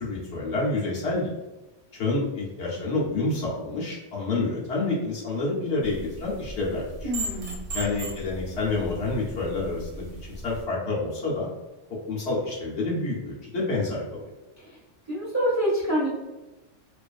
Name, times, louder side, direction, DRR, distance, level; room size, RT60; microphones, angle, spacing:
voice 1, 0.0-1.3 1.9-7.1 7.7-10.1 10.4-11.5 12.1-14.0, left 3 dB, 60° left, -5 dB, 0.9 m, -28 dB
sound 1, 5.8-10.6, right 2 dB, 65° right, 1.0 m, -37 dB
voice 2, 7.0-7.6 14.6-14.8 15.1-16.1, equal, 15° right, -8 dB, 0.7 m, -26 dB
2.4 x 2.4 x 2.3 m, 1.1 s
omnidirectional pair, 1.3 m